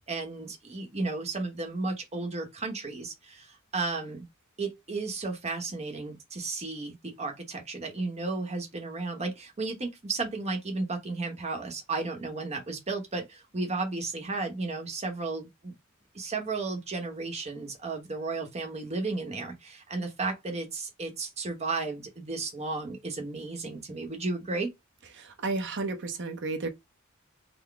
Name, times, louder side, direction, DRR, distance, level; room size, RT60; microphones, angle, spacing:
voice 1, 0.1-4.3 4.6-15.7 16.1-24.7, right 3 dB, 30° right, 1.0 m, -34 dB
voice 2, 25.2-26.7, right 3 dB, 60° right, 0.8 m, -32 dB
3.9 x 2.1 x 3.4 m
head